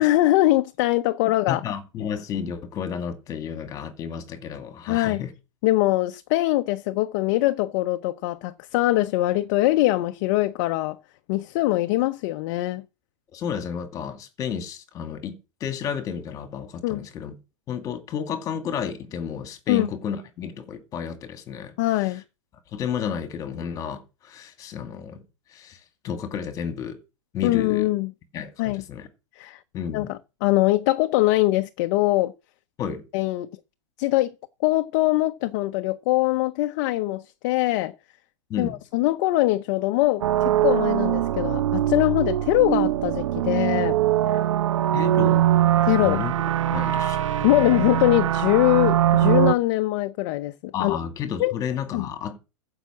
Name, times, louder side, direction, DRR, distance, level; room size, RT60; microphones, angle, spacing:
voice 1, 0.0-1.6 4.9-5.2 5.6-11.0 11.3-12.8 16.8-17.0 19.7-19.9 21.8-22.2 27.4-28.1 28.6-28.8 29.4-29.6 29.9-32.3 33.1-33.5 34.0-34.3 34.6-37.9 38.6-44.0 44.3-44.4 45.8-46.2 47.4-51.0 51.4-51.5 51.9-52.1, left 17 dB, 40° left, 0.7 m, -22 dB
voice 2, 1.5-5.3 13.3-17.3 17.7-22.1 22.7-25.2 25.5-27.0 27.3-27.9 28.3-29.1 29.7-30.1 32.8-33.0 38.5-38.8 44.9-45.5 46.0-46.3 46.7-47.5 50.7-52.4, left 7 dB, 20° left, 2.2 m, -32 dB
sound 1, 40.2-49.5, right 12 dB, 80° right, 0.8 m, -22 dB
15.0 x 5.8 x 7.3 m
supercardioid pair, 165°, 16 cm